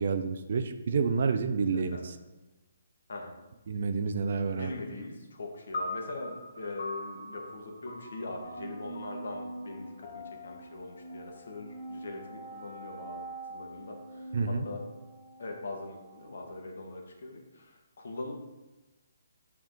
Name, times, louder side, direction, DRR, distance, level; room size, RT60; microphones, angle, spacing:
voice 1, 0.0-2.0 3.7-4.7 14.3-14.7, right 5 dB, 50° right, 8 dB, 0.4 m, -29 dB
voice 2, 1.7-2.1 3.1-3.3 4.5-13.2 13.5-14.8 15.4-18.3, left 2 dB, 65° left, 2 dB, 1.3 m, -41 dB
sound 1, 5.7-12.2, left 2 dB, 45° left, 0.9 m, -43 dB
sound 2, 8.4-16.6, right 2 dB, 15° right, 1.0 m, -45 dB
7.7 x 3.6 x 3.7 m, 1.1 s
hypercardioid pair, 170°, 0 cm